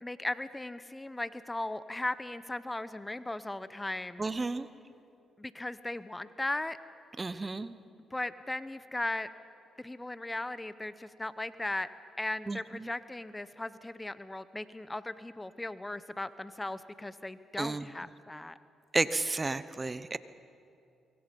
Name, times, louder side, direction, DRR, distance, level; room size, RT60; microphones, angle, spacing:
voice 1, 0.0-4.3 5.4-6.8 8.1-9.3 9.8-11.9 12.2-18.6, left 2 dB, 15° left, 14 dB, 0.8 m, -37 dB
voice 2, 4.2-4.7 7.2-7.7 12.5-12.6 17.6-17.8 18.9-20.2, right 3 dB, 25° right, 14 dB, 0.9 m, -31 dB
24.0 x 23.0 x 5.4 m, 2.5 s
supercardioid pair, 55°, 0 cm